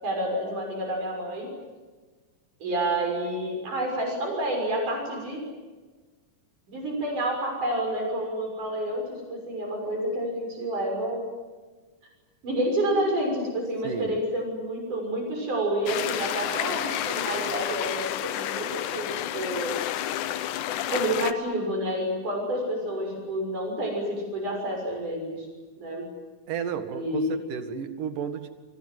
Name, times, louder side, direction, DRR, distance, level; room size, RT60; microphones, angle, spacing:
voice 1, 0.0-1.5 2.6-5.4 6.7-9.0 9.3-11.2 12.4-19.1 19.3-19.7 20.9-25.5 25.8-26.1 26.9-27.4, right 1 dB, 75° right, 1 dB, 7.8 m, -29 dB
voice 2, 13.8-14.2 26.5-28.5, right 7 dB, 90° right, 8 dB, 3.5 m, -33 dB
sound 1, 15.9-21.3, left 12 dB, 80° left, 2.5 m, -30 dB
30.0 x 25.0 x 7.8 m, 1.3 s
omnidirectional pair, 3.6 m